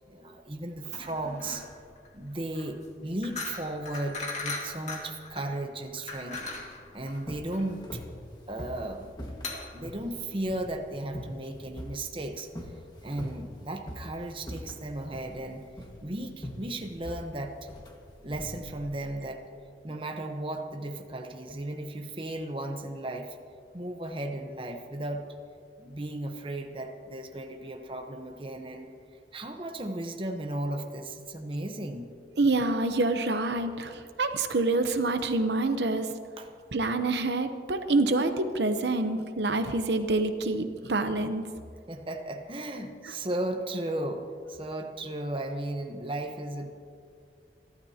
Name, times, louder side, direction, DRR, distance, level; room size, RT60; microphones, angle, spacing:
voice 1, 0.1-1.7 2.1-6.5 6.9-8.0 8.5-12.5 13.0-15.7 16.0-17.7 18.2-19.4 19.8-23.4 23.7-25.3 25.8-28.9 29.3-32.1 36.4-36.6 41.9-46.7, right 1 dB, 30° right, 4 dB, 1.0 m, -35 dB
sound 1, 0.8-10.8, left 3 dB, 40° left, 2.0 m, -40 dB
sound 2, 7.0-19.2, equal, 25° left, 1.7 m, -43 dB
voice 2, 32.4-36.1 36.7-41.4, right 2 dB, 75° right, 8 dB, 0.8 m, -27 dB
28.0 x 12.5 x 2.9 m, 2.2 s
head